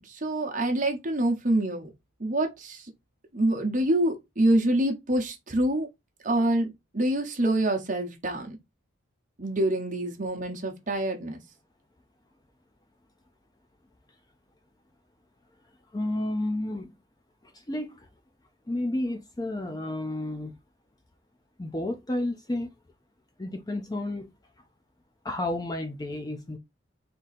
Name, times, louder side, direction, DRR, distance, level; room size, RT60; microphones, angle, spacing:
voice 1, 0.1-1.9 2.2-2.9 3.3-5.9 6.2-8.6 9.4-11.4, right 1 dB, 40° right, 0.9 m, -26 dB
voice 2, 15.9-16.9 17.4-18.1 18.7-20.5 21.6-22.7 23.4-24.3 25.2-26.6, left 1 dB, 20° left, 0.5 m, -31 dB
3.7 x 2.8 x 4.1 m
head